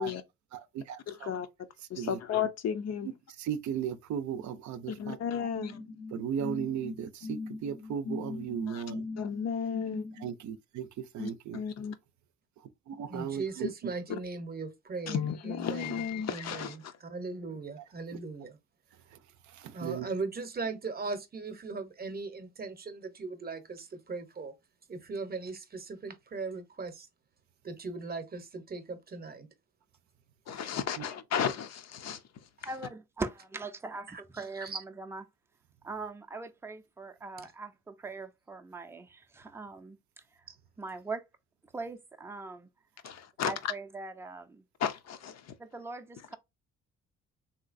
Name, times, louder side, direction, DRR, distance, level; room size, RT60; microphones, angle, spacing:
voice 1, 0.5-1.3 1.9-2.2 3.0-3.1 3.4-5.5 6.1-9.1 10.2-11.6 12.9-13.7 19.1-19.2 19.5-20.1 31.0-31.1, right 8 dB, 70° right, 0.5 m, -36 dB
voice 2, 1.1-1.5 1.9-3.1 4.9-5.8 8.7-8.8 9.2-10.1 11.2-12.0 15.1-16.9 30.5-32.2 43.0-43.5 44.8-45.5, left 7 dB, 60° left, 0.6 m, -33 dB
sound 1, 5.5-10.3, left 3 dB, 90° left, 1.0 m, -40 dB
voice 3, 13.1-16.0 16.3-18.6 19.7-24.5 24.9-27.1 27.6-29.5 34.1-34.2 34.6-34.8 40.5-40.6, right 3 dB, 30° right, 0.7 m, -39 dB
voice 4, 32.6-35.2 35.8-40.4 40.8-41.3 41.7-42.7 43.4-44.6 45.6-46.4, right 3 dB, 10° right, 0.4 m, -41 dB
3.1 x 2.8 x 2.5 m
cardioid pair, 90°, 30 cm